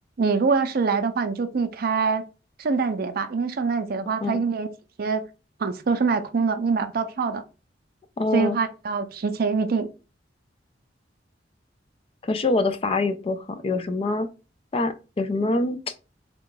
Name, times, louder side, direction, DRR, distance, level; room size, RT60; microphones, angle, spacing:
voice 1, 0.2-2.3 2.6-4.7 5.0-5.2 5.6-7.4 8.3-9.9, right 5 dB, 55° right, 0.4 m, -24 dB
voice 2, 8.2-8.6 12.2-14.3 14.7-15.8, left 2 dB, 30° left, 0.4 m, -25 dB
3.5 x 2.3 x 3.7 m
head